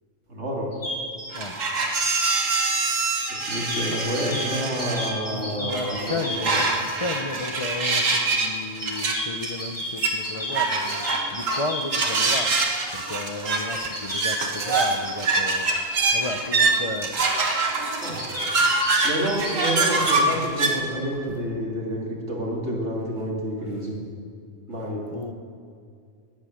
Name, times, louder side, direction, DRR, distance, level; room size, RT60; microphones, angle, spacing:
voice 1, 0.3-0.7 3.3-6.6 18.0-18.3 19.0-24.0 24.7-25.0, equal, 60° right, -2 dB, 3.0 m, -29 dB
sound 1, 0.7-1.3 3.3-6.6 8.8-12.5 13.8-15.1 18.0-19.8, left 1 dB, 10° left, 3.7 m, -32 dB
sound 2, 1.3-5.2 5.7-8.5 8.7-20.7, right 3 dB, 85° right, 1.8 m, -24 dB
voice 2, 5.4-17.2 23.7-23.8 25.1-25.3, left 2 dB, 35° left, 4 dB, 0.6 m, -33 dB
18.5 x 8.6 x 6.5 m, 2.3 s
omnidirectional pair, 1.3 m